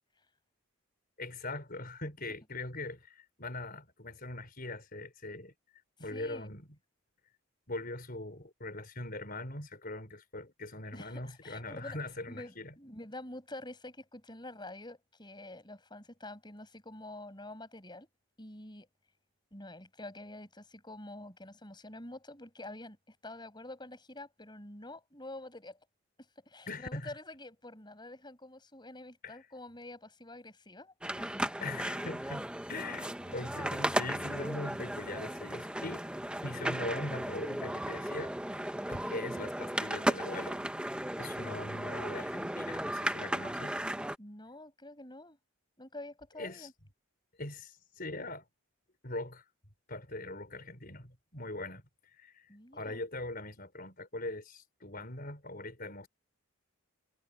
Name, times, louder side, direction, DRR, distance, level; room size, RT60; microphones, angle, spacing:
voice 1, 1.2-5.5 6.0-6.7 7.7-12.7 26.7-27.1 29.2-29.4 31.6-36.0 36.4-38.3 38.8-43.8 46.4-46.7 47.4-48.4 49.0-49.4 49.9-56.1, left 2 dB, 40° left, 5.1 m, -41 dB
voice 2, 6.0-6.5 10.9-18.1 18.4-18.9 19.5-25.8 26.2-31.3 41.4-41.5 42.3-42.4 44.2-45.4 45.8-46.7 52.5-53.0, left 1 dB, 20° left, 6.4 m, -47 dB
sound 1, 31.0-44.2, right 1 dB, 5° right, 0.9 m, -35 dB
head